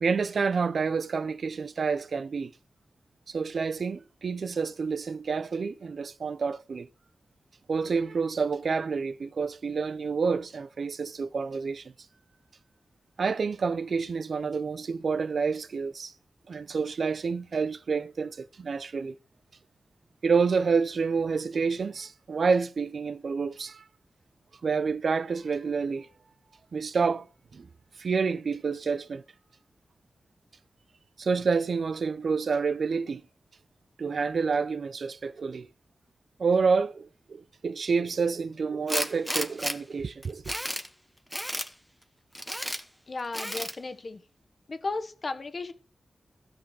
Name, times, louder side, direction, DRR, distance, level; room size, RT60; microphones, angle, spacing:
voice 1, 0.0-2.5 3.3-6.9 7.7-11.8 13.2-16.1 16.5-19.1 20.2-23.8 24.6-26.1 26.7-27.3 27.5-27.7 28.0-29.2 31.2-33.2 34.0-35.7 36.4-40.5, right 5 dB, 70° right, 0.5 m, -28 dB
Tools, 38.9-39.8 40.2-40.9 41.3-41.7 42.3-42.8 43.3-43.8, equal, ahead, 0.9 m, -32 dB
voice 2, 43.1-44.2 44.7-45.7, left 3 dB, 50° left, 1.2 m, -34 dB
15.5 x 6.0 x 4.7 m
wide cardioid pair, 90°, 0 cm